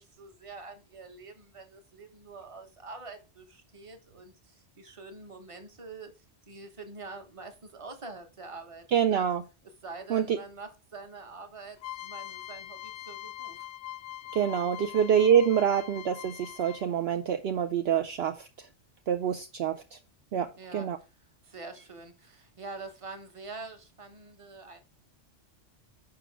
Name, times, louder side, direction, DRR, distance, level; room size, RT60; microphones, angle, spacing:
voice 1, 0.0-6.1 6.5-9.2 9.8-13.7 14.3-14.8 20.6-20.9 21.4-24.8, right 3 dB, 30° right, 1.1 m, -45 dB
voice 2, 8.9-9.4 10.1-10.4 14.3-18.5 19.1-20.0 20.3-21.0, right 8 dB, 65° right, 0.8 m, -26 dB
sound 1, 11.8-17.1, left 13 dB, 90° left, 0.9 m, -43 dB
6.7 x 5.1 x 4.5 m
omnidirectional pair, 1.2 m